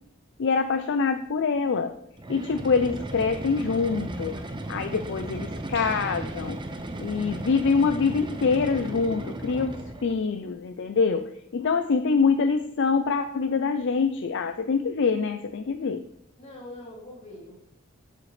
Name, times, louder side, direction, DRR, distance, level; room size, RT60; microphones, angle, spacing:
voice 1, 0.4-1.9 2.3-4.4 4.7-6.6 7.0-16.0, left 5 dB, 60° left, 8 dB, 0.5 m, -25 dB
sound 1, 2.2-10.2, right 1 dB, 25° right, 0.7 m, -35 dB
sound 2, 5.7-7.3, right 5 dB, 55° right, 1.1 m, -48 dB
voice 2, 16.4-17.5, left 1 dB, 35° left, -3 dB, 3.3 m, -43 dB
8.4 x 7.6 x 3.2 m, 0.71 s
head